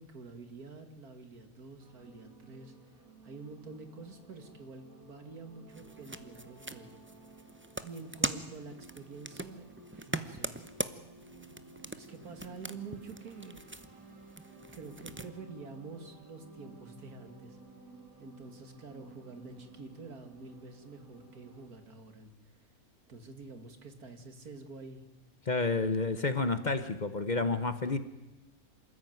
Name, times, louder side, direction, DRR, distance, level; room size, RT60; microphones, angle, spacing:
voice 1, 0.0-7.0 7.8-10.6 11.5-13.6 14.7-17.6 18.2-22.7 23.1-25.0, right 4 dB, 90° right, 8 dB, 2.7 m, -48 dB
sound 1, 1.8-21.7, right 3 dB, 70° right, 3.6 m, -55 dB
sound 2, 5.7-15.3, right 2 dB, 10° right, 0.7 m, -41 dB
voice 2, 25.5-28.0, left 3 dB, 35° left, 12 dB, 1.0 m, -30 dB
26.5 x 14.0 x 9.3 m, 1.0 s
omnidirectional pair, 1.6 m